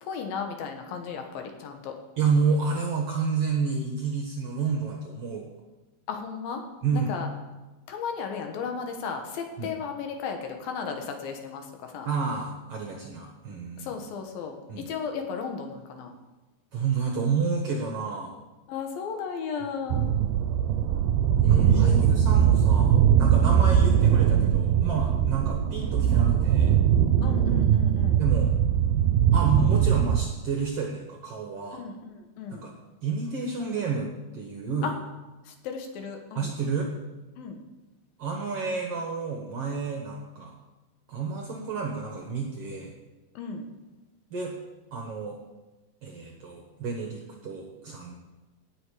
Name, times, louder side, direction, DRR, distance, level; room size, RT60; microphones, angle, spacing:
voice 1, 0.0-2.0 6.1-6.6 6.9-7.3 7.9-12.1 13.8-16.1 18.7-20.0 21.4-22.0 23.4-23.6 27.2-28.2 31.7-32.7 34.8-34.9 35.5-36.5 37.4-37.6 43.4-43.7, left 6 dB, 75° left, 4 dB, 2.9 m, -35 dB
voice 2, 2.2-5.5 6.8-7.2 9.6-9.7 12.1-14.0 14.7-14.9 16.7-18.3 21.5-26.8 28.2-28.5 29.3-31.8 32.5-32.7 33.0-35.0 36.4-36.9 38.2-40.5 41.1-42.9 44.3-44.5 44.9-45.4 46.0-48.1, right 5 dB, 60° right, 1 dB, 1.7 m, -30 dB
sound 1, 19.9-30.3, right 9 dB, 85° right, 2.5 m, -21 dB
17.5 x 6.7 x 4.9 m, 1.1 s
omnidirectional pair, 4.2 m